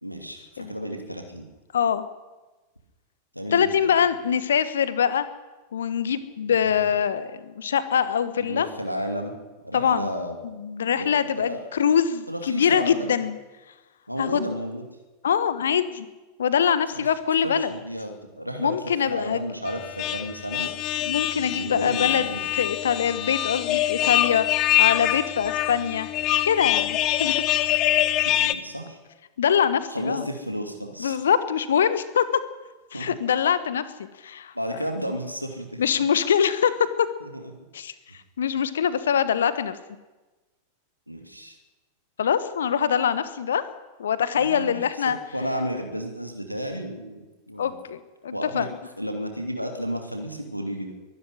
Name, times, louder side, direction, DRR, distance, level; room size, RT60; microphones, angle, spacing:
voice 1, 0.0-1.5 3.3-3.9 6.6-6.9 8.4-9.3 9.6-10.3 10.9-11.1 11.4-11.7 12.3-12.9 14.1-14.8 16.9-17.1 17.4-18.8 19.0-20.7 21.4-22.4 28.2-29.0 29.9-31.2 32.9-33.1 34.5-35.8 37.2-37.5 41.1-41.6 44.3-47.8 48.3-48.7 49.0-50.9, equal, 90° right, 4 dB, 2.6 m, -32 dB
voice 2, 1.7-2.0 3.5-5.2 5.7-8.7 9.7-10.1 10.4-13.4 14.2-14.5 15.2-16.1 16.4-17.7 18.6-19.4 21.0-22.3 22.6-24.5 24.8-26.1 26.4-27.4 29.4-30.3 31.0-32.2 32.9-34.5 35.8-36.7 37.0-37.1 37.7-37.9 38.4-39.7 42.2-43.6 44.0-45.2 47.6-48.7, left 8 dB, 65° left, 14 dB, 1.3 m, -23 dB
sound 1, 19.7-28.5, left 14 dB, 35° left, 1.1 m, -24 dB
23.0 x 12.0 x 10.0 m, 1.2 s
figure-of-eight pair, 90°, 0 cm